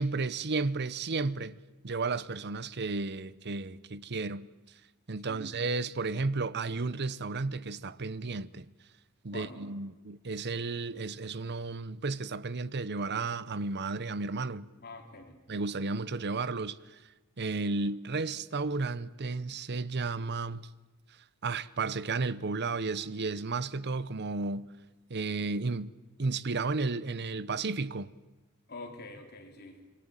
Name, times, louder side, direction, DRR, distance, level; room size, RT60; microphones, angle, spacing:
voice 1, 0.0-1.6 1.8-4.5 5.1-8.7 9.2-14.7 15.5-17.0 17.4-20.6 21.4-24.7 25.1-25.9 26.2-28.1, right 3 dB, 50° right, 0.8 m, -33 dB
voice 2, 9.3-9.6 14.8-15.4 28.7-29.8, left 3 dB, 45° left, 4.5 m, -46 dB
26.0 x 22.5 x 9.1 m
head